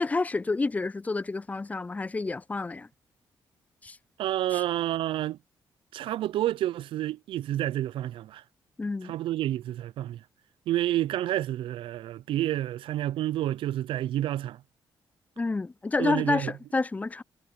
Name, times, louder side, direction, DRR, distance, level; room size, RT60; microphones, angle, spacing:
voice 1, 0.0-2.9 3.8-4.0 8.8-9.1 15.4-17.2, left 3 dB, 15° left, 0.4 m, -29 dB
voice 2, 4.2-5.4 5.9-8.4 9.0-10.2 10.7-14.6 16.0-16.5, right 13 dB, 85° right, 0.4 m, -29 dB
cardioid pair, 85°, 9 cm